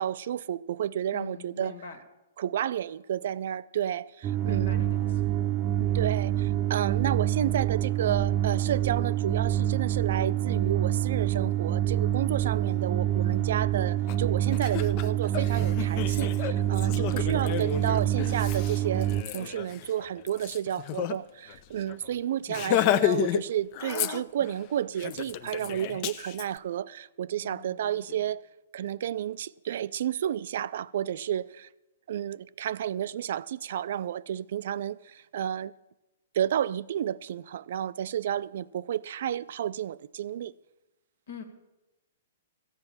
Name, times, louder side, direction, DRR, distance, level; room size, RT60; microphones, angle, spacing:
voice 1, 0.0-1.8 2.4-4.8 5.8-28.5 28.7-31.7 32.1-35.7 36.3-40.5, right 10 dB, 60° right, 0.3 m, -31 dB
voice 2, 1.1-2.0 4.4-5.1 27.4-28.2 41.3-41.4, left 6 dB, 75° left, 2.2 m, -44 dB
sound 1, 4.2-19.2, right 12 dB, 30° right, 0.7 m, -27 dB
Laughter, 14.1-14.2 14.5-21.2 21.5-21.6 21.9-22.1 22.5-23.4 23.7-24.5 25.0-26.4, left 12 dB, 40° left, 0.5 m, -31 dB
13.5 x 8.0 x 7.2 m
hypercardioid pair, 135°, 0 cm